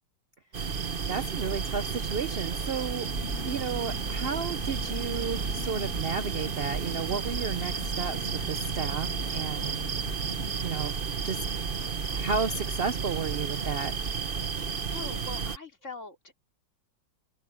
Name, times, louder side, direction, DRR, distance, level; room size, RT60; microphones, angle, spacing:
sound 1, 0.5-15.6, right 5 dB, 35° right, 1.0 m, -32 dB
voice 1, 1.1-3.1 3.5-10.3 10.6-11.0 11.2-11.4 12.1-13.9, right 5 dB, 80° right, 0.5 m, -33 dB
sound 2, 3.0-10.5, left 7 dB, 70° left, 2.2 m, -44 dB
voice 2, 14.9-16.4, left 3 dB, 40° left, 3.3 m, -42 dB
omnidirectional pair, 2.0 m